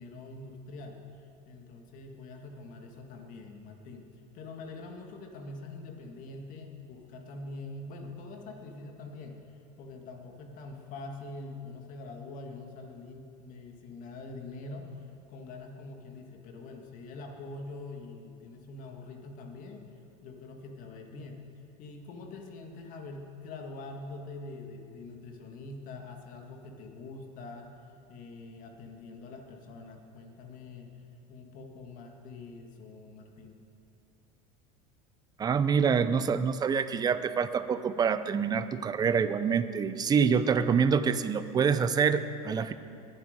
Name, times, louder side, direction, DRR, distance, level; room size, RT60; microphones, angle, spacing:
voice 1, 0.0-4.1 4.3-19.9 20.2-21.4 21.8-27.7 28.1-30.9 31.3-33.6, left 3 dB, 45° left, 3 dB, 2.1 m, -44 dB
voice 2, 35.4-42.7, right 6 dB, 20° right, 13 dB, 0.6 m, -26 dB
20.5 x 9.9 x 5.2 m, 2.6 s
supercardioid pair, 135°, 18 cm